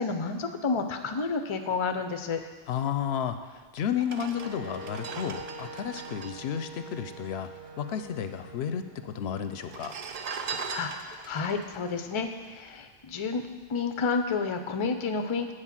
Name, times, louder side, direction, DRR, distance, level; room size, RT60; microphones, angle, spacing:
voice 1, 0.0-2.4 10.7-13.4 13.7-15.5, left 4 dB, 35° left, 7 dB, 0.5 m, -30 dB
voice 2, 2.7-3.4 3.7-7.5 7.8-9.9, left 8 dB, 85° left, 9 dB, 0.8 m, -32 dB
sound 1, 3.3-3.4 3.9-7.6 7.9-8.0 8.2-8.9 9.5-13.0 13.5-13.7, right 5 dB, 50° right, 0.5 m, -40 dB
Wind instrument woodwind instrument, 4.3-10.2, right 2 dB, 70° right, 1.8 m, -45 dB
8.4 x 4.7 x 7.3 m, 1.5 s
omnidirectional pair, 1.0 m